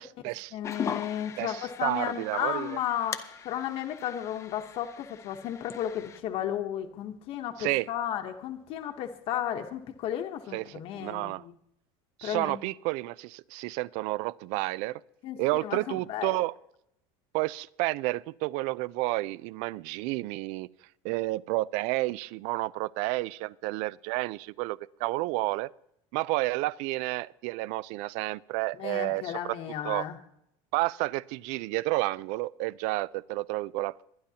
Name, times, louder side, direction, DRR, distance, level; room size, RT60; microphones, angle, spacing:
voice 1, 0.0-0.6 1.4-2.8 7.6-7.9 10.5-11.4 12.2-15.0 15.4-16.5 17.3-20.7 21.0-25.7 26.1-29.6 29.8-30.0 30.7-33.9, right 20 dB, 55° right, 22 dB, 0.4 m, -31 dB
voice 2, 0.5-11.6 12.2-12.6 15.2-16.4 28.8-30.2, left 10 dB, 40° left, 5 dB, 1.0 m, -34 dB
sound 1, 0.6-6.2, left 7 dB, 20° left, 0.5 m, -40 dB
23.5 x 10.5 x 2.8 m, 0.77 s
cardioid pair, 170°, 14 cm